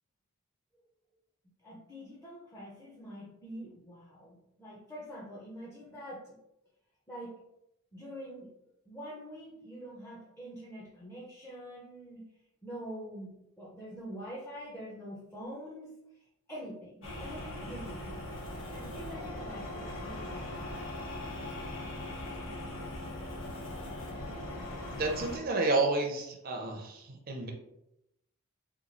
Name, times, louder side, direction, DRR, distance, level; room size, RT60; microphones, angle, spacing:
voice 1, 1.6-6.4 7.1-7.4 7.9-8.5 8.9-12.3 12.6-18.3 18.7-20.5 23.1-23.6, equal, 10° left, -5 dB, 0.6 m, -45 dB
sound 1, 17.0-25.4, left 1 dB, 70° left, 0.9 m, -40 dB
voice 2, 24.9-27.5, right 3 dB, 45° right, 1 dB, 0.5 m, -30 dB
3.0 x 2.3 x 3.8 m, 0.84 s
head